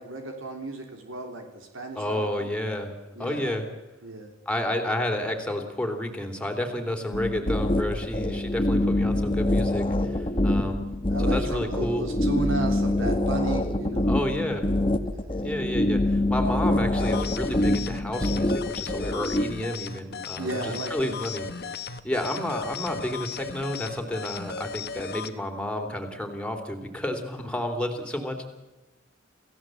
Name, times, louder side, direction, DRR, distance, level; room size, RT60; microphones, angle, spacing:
voice 1, 0.0-2.5 3.2-3.5 4.0-4.3 8.0-8.1 10.6-10.8 11.1-14.4 15.1-15.4 20.4-21.2, right 2 dB, 70° right, 3 dB, 3.4 m, -34 dB
voice 2, 1.9-2.9 3.2-3.7 4.4-10.9 11.2-12.1 14.1-14.7 15.4-21.8 22.0-28.5, left 1 dB, 5° left, 3 dB, 3.2 m, -31 dB
sound 1, 7.1-19.4, left 1 dB, 25° left, 1.3 m, -25 dB
sound 2, 17.0-25.3, left 6 dB, 55° left, 1.3 m, -36 dB
28.5 x 16.5 x 7.7 m, 1.1 s
head